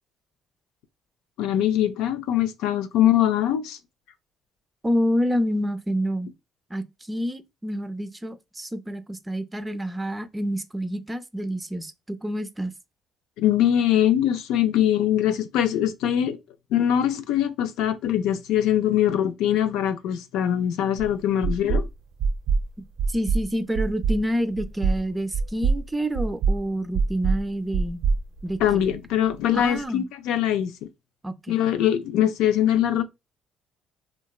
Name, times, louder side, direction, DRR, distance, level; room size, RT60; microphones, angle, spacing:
voice 1, 1.4-3.8 13.4-16.4 16.7-21.9 28.6-30.7 31.5-33.0, left 11 dB, 80° left, 0.3 m, -22 dB
voice 2, 4.8-6.3 6.7-12.7 23.1-28.0 28.4-28.6 29.5-30.1 31.2-31.6, equal, 15° right, 0.4 m, -28 dB
sound 1, 21.0-21.1 21.4-21.9 22.2-22.6 23.0-23.4 23.8-24.2 24.6-25.0 25.3-25.8 26.2-26.6 26.9-27.4 27.7-28.9, right 4 dB, 70° right, 0.4 m, -23 dB
2.9 x 2.2 x 2.2 m
supercardioid pair, 70°, 0 cm